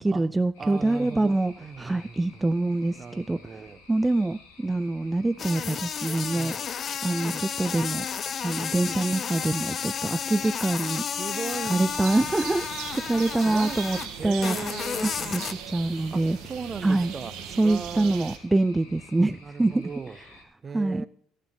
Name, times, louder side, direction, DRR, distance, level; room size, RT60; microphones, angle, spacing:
voice 1, 0.0-6.6 7.0-8.1 8.4-11.1 11.7-12.7 13.0-14.6 15.0-15.4 15.7-16.4 16.8-17.1 17.6-19.9 20.2-20.3 20.7-21.1, right 2 dB, 15° right, 15 dB, 0.4 m, -25 dB
sound 1, 0.5-20.4, left 3 dB, 80° left, 3.0 m, -53 dB
voice 2, 0.6-2.4 3.0-3.8 6.3-6.6 11.2-12.0 13.3-13.8 14.2-15.2 16.1-17.3 17.6-18.3 19.4-20.2 20.6-21.1, right 5 dB, 40° right, 16 dB, 1.0 m, -37 dB
sound 2, 5.4-14.1 14.4-15.5, left 7 dB, 50° left, 0.8 m, -32 dB
sound 3, 11.9-18.4, right 8 dB, 70° right, 1.9 m, -39 dB
18.0 x 9.1 x 3.4 m, 0.62 s
hypercardioid pair, 60°, 0 cm